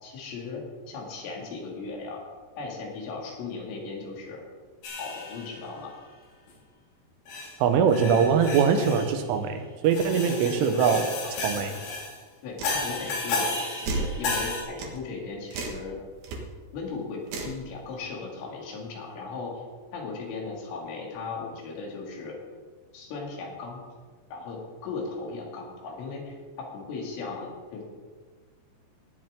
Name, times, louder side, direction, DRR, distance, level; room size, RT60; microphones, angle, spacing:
voice 1, 0.0-2.2 2.6-4.4 5.0-5.9 8.7-8.9 10.0-11.7 12.4-13.5 13.8-16.0 16.7-19.5 19.9-22.4 22.9-23.8 24.3-27.8, left 4 dB, 85° left, -1 dB, 5.0 m, -37 dB
sound 1, 4.8-5.7 6.5-6.6 7.3-7.5 7.9-9.2 9.8-12.2 12.6-14.6, left 3 dB, 70° left, 4.7 m, -33 dB
voice 2, 7.6-11.1 11.4-11.8, right 6 dB, 85° right, 7 dB, 3.6 m, -22 dB
sound 2, 12.6-12.8 13.9-14.1 14.8-15.0 15.5-15.8 16.2-16.4 17.3-17.6, right 3 dB, 60° right, 3.0 m, -31 dB
18.0 x 10.5 x 3.7 m, 1.5 s
omnidirectional pair, 5.5 m